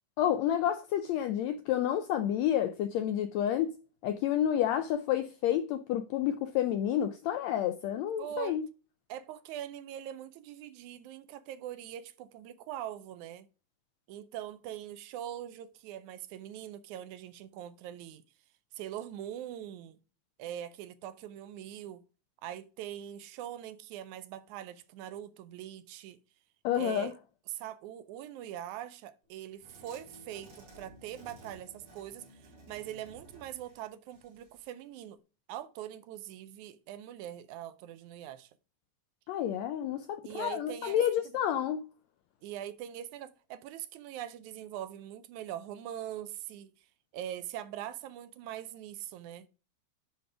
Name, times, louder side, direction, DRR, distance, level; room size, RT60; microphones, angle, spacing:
voice 1, 0.2-3.7 4.0-8.6 26.6-27.1 39.3-41.8, left 10 dB, 85° left, 1.5 m, -30 dB
voice 2, 8.2-8.6 9.1-13.5 14.1-18.2 18.8-20.0 20.4-22.0 22.4-26.2 26.7-27.2 27.5-35.2 35.5-38.5 40.2-41.0 42.4-46.7 47.1-49.5, right 11 dB, 80° right, 1.9 m, -42 dB
sound 1, 29.6-34.6, right 1 dB, 55° right, 4.2 m, -55 dB
10.5 x 4.0 x 4.7 m
omnidirectional pair, 3.6 m